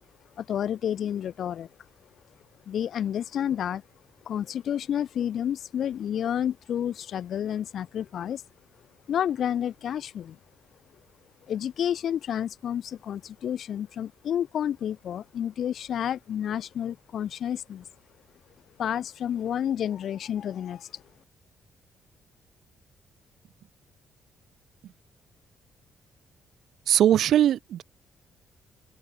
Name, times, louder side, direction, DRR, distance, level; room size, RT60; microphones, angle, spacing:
voice 1, 0.4-1.7 2.7-3.8 4.3-8.4 9.1-10.4 11.5-17.8 18.8-21.0, left 9 dB, 65° left, 0.6 m, -30 dB
voice 2, 26.9-27.8, right 11 dB, 70° right, 0.4 m, -21 dB
open air
cardioid pair, 90°, 0 cm